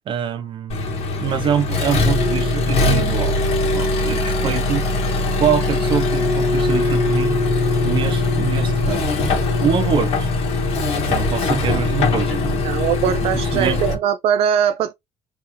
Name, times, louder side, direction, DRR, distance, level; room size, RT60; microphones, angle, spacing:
voice 1, 0.1-3.3 3.7-4.9 5.4-7.5 7.8-9.1 9.6-10.3 10.9-12.6 13.2-13.8, right 8 dB, 45° right, 0.8 m, -24 dB
Accelerating revving vroom, 0.7-13.9, left 3 dB, 65° left, 1.8 m, -20 dB
voice 2, 12.6-14.9, right 9 dB, 65° right, 0.4 m, -20 dB
3.5 x 3.3 x 3.1 m
cardioid pair, 135°, 11 cm